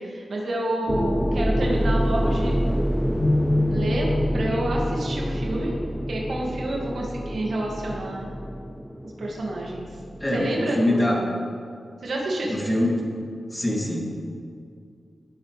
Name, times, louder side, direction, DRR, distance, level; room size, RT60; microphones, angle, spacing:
voice 1, 0.0-2.6 3.7-5.7 6.1-8.3 9.0-9.9 10.3-11.3 12.0-12.8, right 1 dB, 70° right, -2 dB, 2.1 m, -29 dB
sound 1, 0.9-10.6, equal, ahead, 0.3 m, -27 dB
sound 2, 3.2-7.4, left 2 dB, 65° left, 1.3 m, -29 dB
voice 2, 10.2-11.2 12.4-13.0 13.5-14.1, left 1 dB, 20° left, -2 dB, 2.8 m, -24 dB
17.0 x 7.9 x 3.4 m, 2.3 s
cardioid pair, 45°, 0 cm